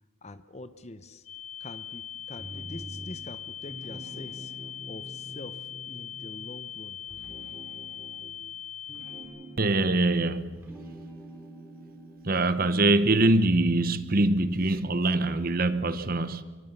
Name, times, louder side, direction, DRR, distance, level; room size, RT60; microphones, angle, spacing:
voice 1, 0.2-1.3 1.6-7.0, left 2 dB, 30° left, 0.9 m, -45 dB
sound 1, 1.2-9.2, left 10 dB, 80° left, 7.2 m, -41 dB
sound 2, 2.4-3.3 3.6-6.7 7.0-10.2 10.5-13.2, right 1 dB, 10° right, 3.6 m, -46 dB
voice 2, 9.6-10.7 12.2-16.4, right 2 dB, 45° right, 0.9 m, -24 dB
26.0 x 23.0 x 6.8 m
head